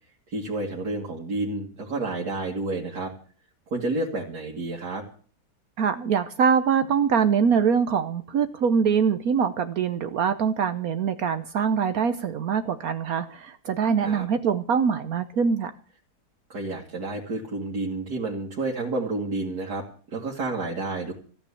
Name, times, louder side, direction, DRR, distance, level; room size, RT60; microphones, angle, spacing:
voice 1, 0.3-3.1 3.7-5.0 14.0-14.3 16.5-21.1, right 2 dB, 90° right, -3 dB, 2.8 m, -30 dB
voice 2, 5.8-15.7, right 6 dB, 65° right, 9 dB, 1.3 m, -23 dB
15.0 x 9.2 x 8.4 m, 0.42 s
omnidirectional pair, 1.7 m